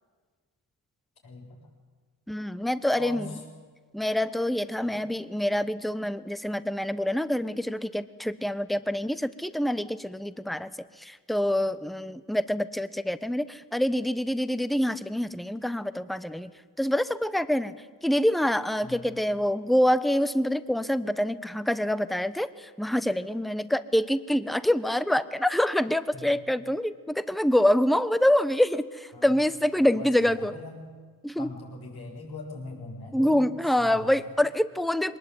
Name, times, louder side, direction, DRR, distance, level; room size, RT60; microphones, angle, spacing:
voice 1, 1.2-1.6 2.9-3.4 4.9-5.1 18.8-19.0 26.1-26.3 29.1-29.4 29.9-30.8 31.4-33.4 33.8-34.3, left 3 dB, 65° left, 0 dB, 7.9 m, -41 dB
voice 2, 2.3-3.4 3.9-10.7 11.0-16.5 16.8-17.7 18.0-30.5 31.2-31.5 33.1-35.2, left 1 dB, ahead, 14 dB, 1.1 m, -26 dB
22.5 x 19.5 x 9.2 m, 1.5 s
cardioid pair, 65°, 39 cm